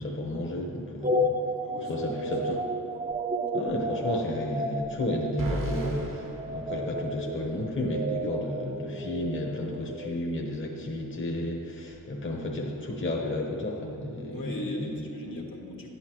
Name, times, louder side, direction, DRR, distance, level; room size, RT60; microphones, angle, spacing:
voice 1, 0.0-1.4 1.9-2.6 3.5-14.9, left 1 dB, 35° left, -1 dB, 1.1 m, -32 dB
sound 1, 1.0-10.2, equal, 20° right, 0.7 m, -32 dB
voice 2, 1.6-2.7 14.3-15.9, left 1 dB, 65° left, -1 dB, 1.6 m, -39 dB
sound 2, 5.4-7.5, right 2 dB, 60° right, 1.1 m, -34 dB
10.5 x 8.3 x 3.1 m, 2.7 s
cardioid pair, 50°, 37 cm